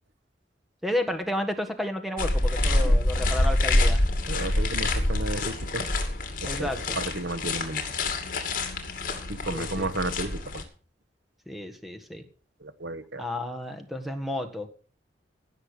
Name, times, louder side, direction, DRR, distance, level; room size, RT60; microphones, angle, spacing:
voice 1, 0.8-4.0 6.4-7.0 9.5-9.9 11.5-12.2 13.2-14.7, left 1 dB, ahead, 7 dB, 1.6 m, -32 dB
sound 1, 2.2-10.6, left 1 dB, 50° left, 2.5 m, -26 dB
voice 2, 4.3-5.9 6.4-7.8 9.3-10.6 12.6-13.2, right 2 dB, 80° right, 13 dB, 1.1 m, -33 dB
17.0 x 6.6 x 6.7 m, 0.41 s
head